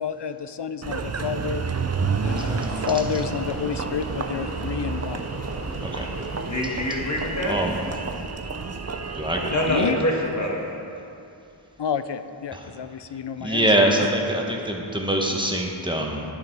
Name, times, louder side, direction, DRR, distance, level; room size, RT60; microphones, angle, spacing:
voice 1, 0.0-1.6 2.2-5.2 9.7-10.0 11.8-13.7 14.0-14.1, left 7 dB, 60° left, 11 dB, 0.6 m, -29 dB
Engine, 0.8-9.8, right 5 dB, 35° right, 0.5 m, -30 dB
sound 1, 2.3-8.0, left 2 dB, 90° left, 1.2 m, -40 dB
voice 2, 6.5-7.5 9.5-10.6, left 1 dB, 35° left, -2 dB, 2.0 m, -25 dB
voice 3, 7.5-7.8 9.1-9.9 12.5-12.7 13.4-16.2, right 1 dB, 10° right, 0 dB, 1.3 m, -24 dB
11.0 x 9.3 x 4.7 m, 2.6 s
wide cardioid pair, 70°, 49 cm